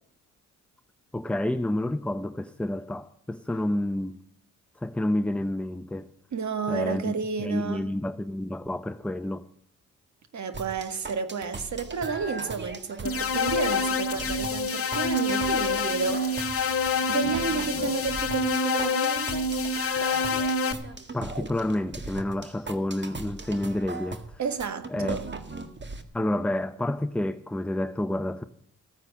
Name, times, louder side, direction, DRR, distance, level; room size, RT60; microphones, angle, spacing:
voice 1, 1.1-4.2 4.8-6.1 6.7-9.4 21.1-24.4 24.9-25.2 26.1-28.4, left 1 dB, 5° left, 0.7 m, -29 dB
voice 2, 6.3-7.8 10.3-16.6 17.1-19.5 24.4-25.3, right 5 dB, 60° right, 1.9 m, -31 dB
sound 1, 10.5-26.0, right 3 dB, 35° right, 1.8 m, -39 dB
sound 2, 13.0-20.7, left 3 dB, 45° left, 1.3 m, -27 dB
15.0 x 9.5 x 7.4 m
cardioid pair, 70°, 32 cm